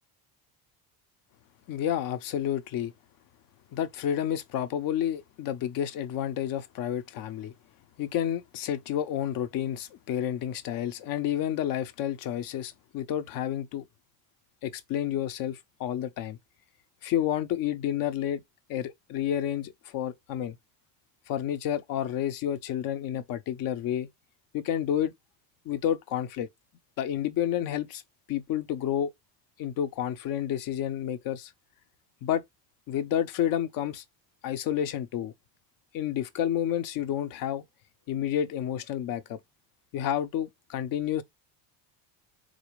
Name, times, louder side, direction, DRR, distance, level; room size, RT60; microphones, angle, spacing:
voice 1, 1.7-2.9 3.7-7.5 8.0-13.8 14.6-16.4 17.0-18.4 18.7-20.5 21.3-24.1 24.5-25.1 25.7-26.5 27.0-28.0 28.3-29.1 29.6-31.5 32.2-32.4 32.9-34.0 34.4-35.3 35.9-37.6 38.1-39.4 39.9-41.2, left 10 dB, 50° left, 0.7 m, -30 dB
4.1 x 2.5 x 3.1 m
cardioid pair, 130°, 44 cm